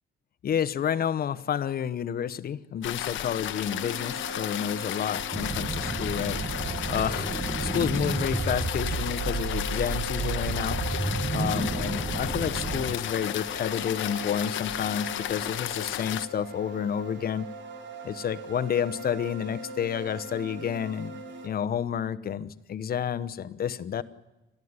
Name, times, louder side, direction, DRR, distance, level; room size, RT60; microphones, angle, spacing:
voice 1, 0.4-6.4 6.9-10.8 11.3-17.5 18.0-24.0, left 8 dB, 50° left, 14 dB, 1.0 m, -30 dB
sound 1, 2.8-16.3, left 13 dB, 85° left, 1.0 m, -34 dB
sound 2, 3.7-21.5, right 2 dB, 75° right, 3.3 m, -41 dB
sound 3, 5.3-12.9, right 3 dB, 20° right, 1.0 m, -31 dB
29.0 x 13.5 x 9.7 m, 1.1 s
cardioid pair, 130°, 19 cm